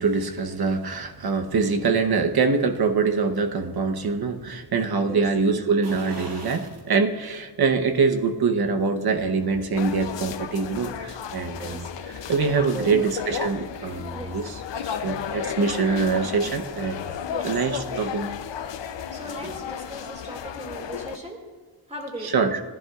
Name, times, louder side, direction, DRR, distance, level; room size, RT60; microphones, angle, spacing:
voice 1, 0.0-11.9 12.3-17.2 17.4-18.4 20.8-20.9 22.2-22.6, right 4 dB, 60° right, 6 dB, 0.9 m, -24 dB
sound 1, 5.8-6.9 7.3-7.4 8.9-9.7 10.1-10.2, right 2 dB, 75° right, 1.8 m, -41 dB
sound 2, 9.8-21.2, left 8 dB, 85° left, 0.7 m, -33 dB
voice 2, 11.6-11.9 12.7-13.0 14.1-14.4 17.3-17.5 19.1-21.4 21.9-22.5, right 1 dB, 15° right, 1 dB, 2.3 m, -38 dB
18.0 x 10.5 x 2.4 m, 1.5 s
wide cardioid pair, 110°, 42 cm